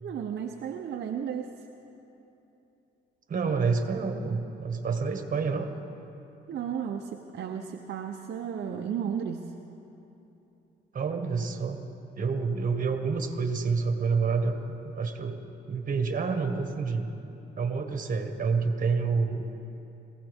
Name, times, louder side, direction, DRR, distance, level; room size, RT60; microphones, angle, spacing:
voice 1, 0.0-1.5 6.5-9.5, right 8 dB, 60° right, 2 dB, 0.8 m, -34 dB
voice 2, 3.3-5.7 10.9-11.8 12.2-14.6 14.8-15.4 15.7-17.1 17.6-19.5, right 5 dB, 40° right, 6 dB, 1.5 m, -28 dB
22.0 x 16.0 x 3.6 m, 3.0 s
cardioid pair, 90°, 20 cm